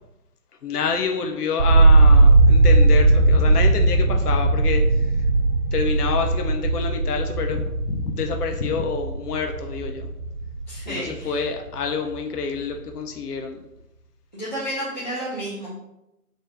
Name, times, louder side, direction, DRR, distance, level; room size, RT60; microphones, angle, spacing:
voice 1, 0.6-5.3 5.7-10.1 10.9-13.6, left 5 dB, 75° left, 4 dB, 0.6 m, -28 dB
sound 1, 1.6-11.6 11.9-12.6, right 2 dB, 65° right, 0.5 m, -18 dB
voice 2, 10.7-11.4 14.3-15.7, equal, 30° left, -9 dB, 0.7 m, -31 dB
3.3 x 2.6 x 3.3 m, 0.89 s
figure-of-eight pair, 170°, 47 cm